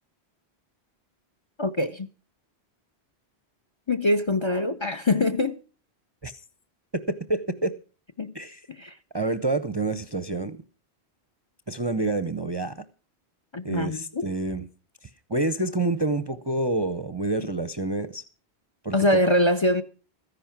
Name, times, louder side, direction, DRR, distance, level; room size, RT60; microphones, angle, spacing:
voice 1, 1.6-2.1 3.9-5.6 8.2-8.3 8.7-8.9 13.5-14.3 18.9-19.8, left 1 dB, 30° left, 0.6 m, -23 dB
voice 2, 6.9-7.7 8.3-8.6 9.1-10.6 11.7-12.8 13.6-14.6 15.3-18.2 18.8-19.3, right 2 dB, 30° right, 0.6 m, -28 dB
14.0 x 10.5 x 5.9 m
omnidirectional pair, 1.1 m